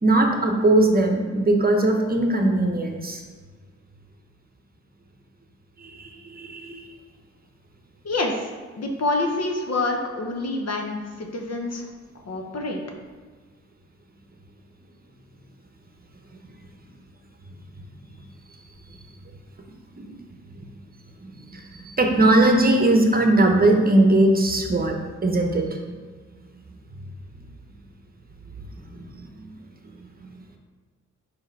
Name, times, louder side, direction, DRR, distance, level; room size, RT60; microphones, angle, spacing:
voice 1, 0.0-3.2 5.8-6.9 19.9-20.2 20.6-20.7 21.2-25.9 28.9-29.5 30.2-30.3, right 2 dB, 30° right, 2 dB, 0.9 m, -20 dB
voice 2, 8.0-8.5 8.8-11.9 12.2-12.8, left 2 dB, 55° left, 2 dB, 1.0 m, -27 dB
5.1 x 4.6 x 4.6 m, 1.5 s
cardioid pair, 75°, 31 cm